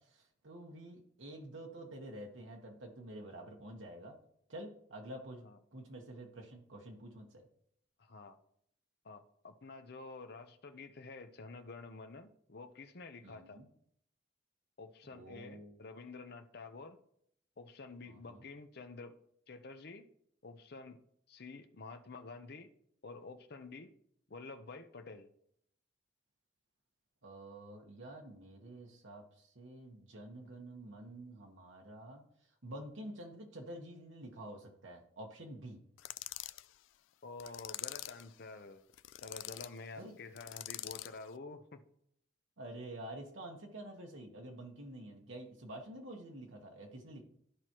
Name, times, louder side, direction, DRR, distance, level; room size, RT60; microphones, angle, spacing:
voice 1, 0.0-4.2 4.5-5.4 5.7-7.5 13.2-13.7 15.0-15.8 18.0-18.4 27.2-32.2 32.6-35.8 40.0-40.2 42.6-47.2, right 1 dB, 85° right, 2 dB, 1.2 m, -48 dB
voice 2, 8.0-8.4 9.0-13.6 14.8-17.0 17.6-19.2 19.5-20.1 20.4-21.0 21.3-22.7 23.0-23.9 24.3-25.3 37.2-38.8 39.2-41.9, left 3 dB, 55° left, 8 dB, 0.7 m, -49 dB
sound 1, 36.0-36.7 37.4-38.3 38.9-39.7 40.4-41.2, left 15 dB, 85° left, 0.3 m, -44 dB
13.0 x 4.7 x 3.0 m, 0.69 s
head